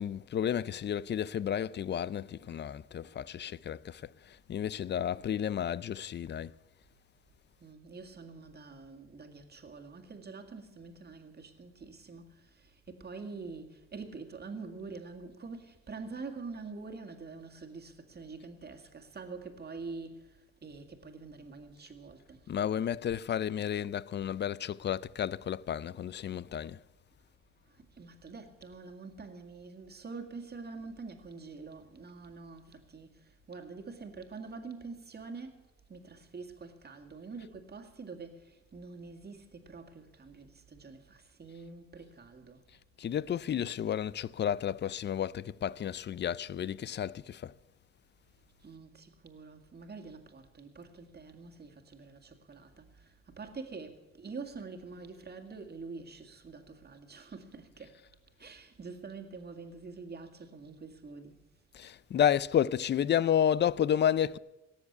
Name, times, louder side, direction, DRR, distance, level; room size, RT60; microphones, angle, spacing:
voice 1, 0.0-6.5 22.5-26.8 43.0-47.5 61.7-64.4, left 9 dB, 35° left, 0.4 m, -31 dB
voice 2, 7.6-20.2 20.6-22.4 28.0-33.2 33.5-42.6 48.6-57.9 58.4-61.4, right 4 dB, 35° right, 2.1 m, -46 dB
18.0 x 7.2 x 9.4 m
cardioid pair, 90°, 30 cm